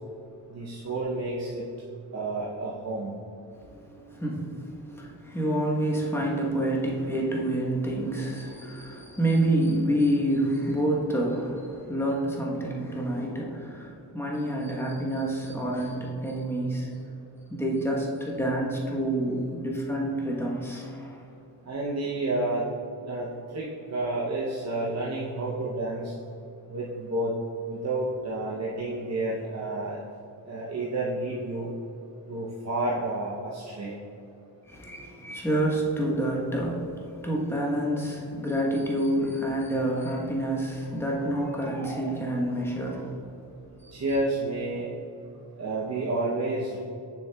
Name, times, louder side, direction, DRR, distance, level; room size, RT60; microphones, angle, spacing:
voice 1, 0.5-1.7 2.1-3.1 21.6-22.7 23.1-23.3 23.5-26.1 26.7-27.4 27.7-30.0 30.5-31.7 32.3-33.9 43.9-44.9 45.6-46.8, right 2 dB, 40° right, -4 dB, 0.7 m, -30 dB
voice 2, 3.6-17.1 17.5-21.2 34.7-43.3 43.8-44.0, right 1 dB, 5° left, -2 dB, 1.0 m, -28 dB
7.2 x 6.2 x 2.3 m, 2.7 s
cardioid pair, 95°, 42 cm